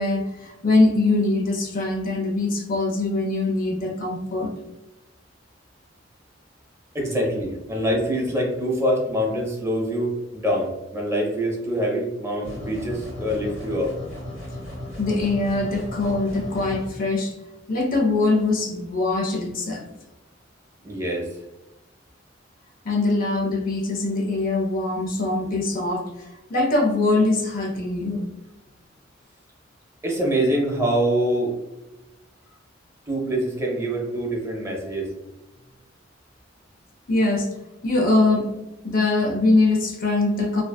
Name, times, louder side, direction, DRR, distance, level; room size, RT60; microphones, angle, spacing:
voice 1, 0.0-4.5 15.0-17.3 17.7-19.8 22.8-28.2 37.1-37.5 37.8-38.5 38.8-40.6, left 2 dB, 45° left, 2 dB, 0.4 m, -22 dB
voice 2, 6.9-13.9 20.8-21.3 30.0-31.5 33.1-35.1, right 1 dB, 15° right, -1 dB, 0.5 m, -25 dB
sound 1, 12.4-16.8, left 1 dB, 80° left, 0.9 m, -35 dB
2.5 x 2.2 x 2.2 m, 0.99 s
head